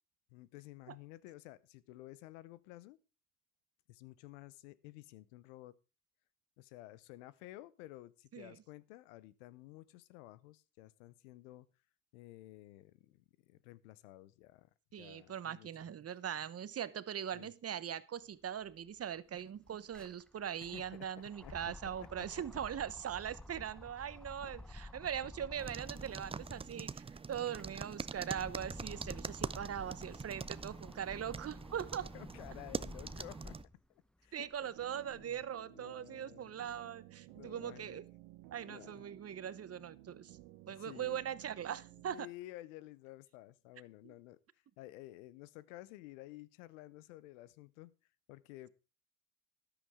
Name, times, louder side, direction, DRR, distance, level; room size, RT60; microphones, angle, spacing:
voice 1, 0.3-3.0 3.9-5.8 6.6-11.7 12.1-14.7 15.0-15.9 17.3-17.5 20.7-21.1 21.4-21.5 22.2-22.3 24.4-24.5 32.1-33.6 34.2-35.4 35.7-36.6 37.4-38.0 38.6-39.0 40.7-41.2 42.1-44.4 44.8-47.9 48.3-48.7, left 16 dB, 90° left, 0.7 m, -53 dB
voice 2, 14.9-32.1 34.3-38.0 38.5-40.4 40.7-42.3 44.0-44.1, right 9 dB, 40° right, 0.9 m, -41 dB
sound 1, 18.6-18.7 19.0-26.8 27.3-33.8 34.3-35.4, left 1 dB, ahead, 0.9 m, -52 dB
sound 2, 25.6-33.6, right 5 dB, 15° right, 0.5 m, -44 dB
sound 3, 34.7-42.1, right 16 dB, 80° right, 1.0 m, -56 dB
13.5 x 10.5 x 3.6 m
hypercardioid pair, 60°, 36 cm